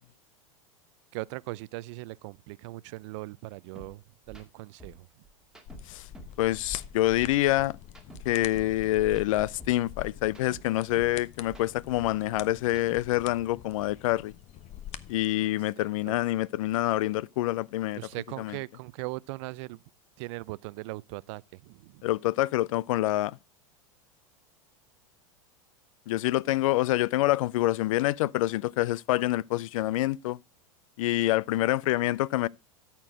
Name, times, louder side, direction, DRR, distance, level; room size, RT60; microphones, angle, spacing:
voice 1, 1.1-5.1 15.4-15.5 15.8-16.2 18.0-19.8 20.2-22.0, right 21 dB, 60° right, 0.4 m, -39 dB
sound 1, 3.8-3.9 4.2-4.4 4.8-6.4 6.7-8.8 9.1-11.2 11.4-13.3, right 3 dB, 5° right, 2.0 m, -49 dB
sound 2, 5.7-15.3, left 11 dB, 40° left, 0.7 m, -45 dB
voice 2, 6.4-7.8 8.3-14.3 15.1-18.0 18.4-18.6 22.0-23.4 26.1-30.4 31.0-32.5, left 16 dB, 70° left, 0.4 m, -26 dB
13.0 x 4.5 x 4.8 m
hypercardioid pair, 105°, 18 cm